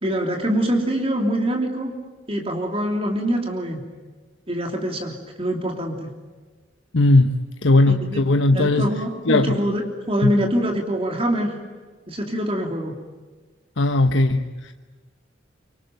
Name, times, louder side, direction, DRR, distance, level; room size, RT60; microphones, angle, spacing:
voice 1, 0.0-2.0 2.3-3.8 4.5-6.1 7.9-8.2 8.5-11.6 12.1-12.9, equal, 30° right, 2 dB, 3.0 m, -24 dB
voice 2, 6.9-7.3 7.6-8.9 9.3-9.6 10.2-10.3 13.8-14.7, left 2 dB, 85° left, 6 dB, 1.1 m, -18 dB
26.0 x 24.5 x 9.3 m, 1.4 s
head